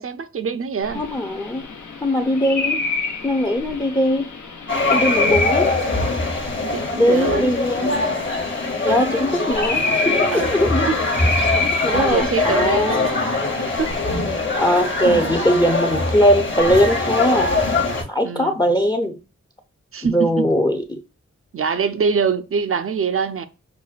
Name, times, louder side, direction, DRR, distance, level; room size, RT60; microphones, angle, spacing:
voice 1, 0.0-1.1 5.0-5.1 6.6-7.5 8.9-9.2 10.3-10.6 10.8-11.0 11.3-11.5 11.8-13.3 13.7-14.0 18.2-18.6 19.9-20.5 21.5-23.4, right 6 dB, 50° right, 0.5 m, -24 dB
sound 1, 0.8-18.0, left 3 dB, 80° left, 0.9 m, -29 dB
voice 2, 1.0-1.6 2.0-2.9 3.2-4.3 4.9-5.7 7.0-7.9 8.8-10.9 11.6-13.1 14.6-17.5 18.1-19.2 20.1-21.0, equal, 15° left, 0.5 m, -20 dB
sound 2, 4.7-18.0, left 3 dB, 40° left, 1.1 m, -22 dB
5.8 x 2.1 x 2.3 m
cardioid pair, 50°, 29 cm